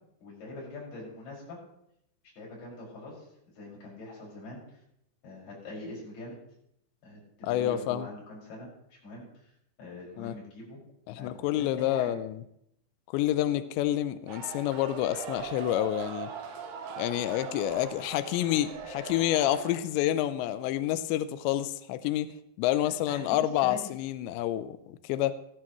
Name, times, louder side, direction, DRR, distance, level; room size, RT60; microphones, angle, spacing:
voice 1, 0.2-1.6 2.4-3.3 3.6-4.6 5.2-6.4 7.0-9.5 9.8-10.8 11.2-11.3 11.6-12.1 22.8-23.9, left 2 dB, 50° left, -5 dB, 7.3 m, -43 dB
voice 2, 7.4-8.1 10.2-10.4 11.1-12.4 13.1-16.3 17.0-22.3 22.6-25.3, left 13 dB, 85° left, 12 dB, 2.5 m, -28 dB
sound 1, 14.3-19.8, right 6 dB, 70° right, 2.9 m, -40 dB
16.5 x 14.5 x 3.1 m, 0.76 s
omnidirectional pair, 5.7 m